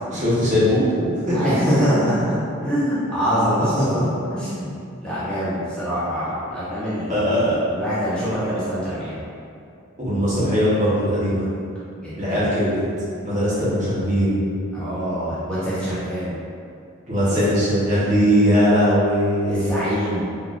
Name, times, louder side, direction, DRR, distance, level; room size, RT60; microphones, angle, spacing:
voice 1, 0.1-1.5 7.1-7.6 10.0-11.5 12.2-12.8 13.2-14.4 17.1-19.8, equal, 35° right, -10 dB, 0.9 m, -20 dB
voice 2, 1.3-4.8 5.0-7.1 7.7-9.3 12.0-12.5 14.7-16.4 17.4-17.5 19.5-20.2, equal, 5° left, -12 dB, 0.6 m, -24 dB
3.6 x 2.4 x 2.5 m, 2.5 s
head